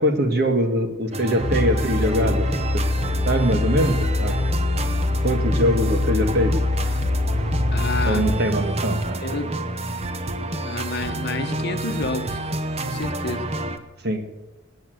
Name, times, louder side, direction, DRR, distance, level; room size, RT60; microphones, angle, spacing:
voice 1, 0.0-2.5 2.7-2.9 3.3-4.3 5.2-6.6 8.0-9.2 14.0-14.2, equal, 50° right, 6 dB, 1.8 m, -22 dB
sound 1, 1.1-13.8, right 2 dB, 30° right, 0.9 m, -28 dB
sound 2, 1.4-8.3, left 2 dB, ahead, 4.1 m, -24 dB
voice 2, 7.7-8.2 9.2-9.6 10.6-12.4 12.8-13.5, left 3 dB, 50° left, 8 dB, 1.1 m, -29 dB
19.5 x 8.8 x 7.9 m, 1.0 s
head